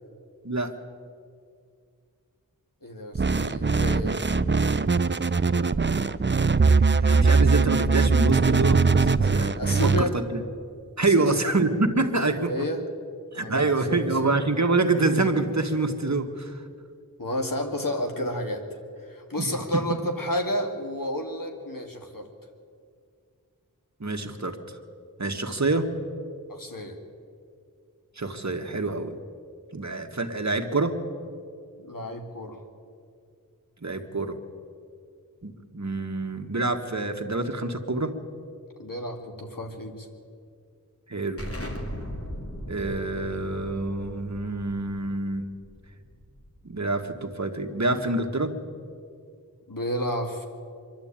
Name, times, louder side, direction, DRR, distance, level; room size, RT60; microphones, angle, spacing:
voice 1, 2.8-4.2 9.5-10.2 11.0-11.4 12.5-12.8 13.3-14.3 17.2-22.3 26.5-27.0 31.8-32.6 38.8-40.1 49.7-50.5, left 1 dB, 70° left, 3 dB, 2.5 m, -31 dB
sound 1, 3.2-10.0, right 4 dB, 35° right, 0.6 m, -21 dB
voice 2, 6.6-10.4 11.0-12.5 13.3-16.6 19.4-19.5 24.0-24.6 25.2-25.9 28.2-29.1 29.7-31.0 33.8-34.4 35.4-38.1 41.1-41.4 42.7-45.5 46.6-48.5, right 2 dB, 50° right, 5 dB, 1.6 m, -26 dB
Explosion, 41.4-46.8, equal, 40° left, 2.8 m, -38 dB
25.5 x 11.5 x 8.8 m, 2.3 s
wide cardioid pair, 50°, 35 cm